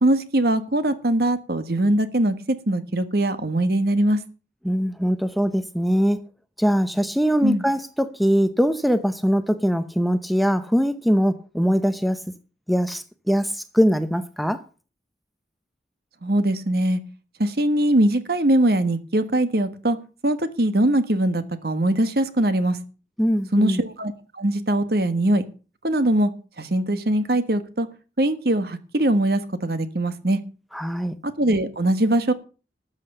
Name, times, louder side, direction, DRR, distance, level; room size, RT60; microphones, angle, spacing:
voice 1, 0.0-4.2 7.4-7.6 16.2-17.0 17.4-20.0 20.2-22.8 23.5-25.4 25.8-26.3 26.6-27.9 28.2-30.4 31.2-32.3, right 1 dB, 60° right, 1.4 m, -21 dB
voice 2, 4.6-6.2 6.6-12.2 12.7-14.6 23.2-23.8 30.7-31.1, equal, ahead, 0.7 m, -22 dB
13.0 x 8.0 x 6.6 m
head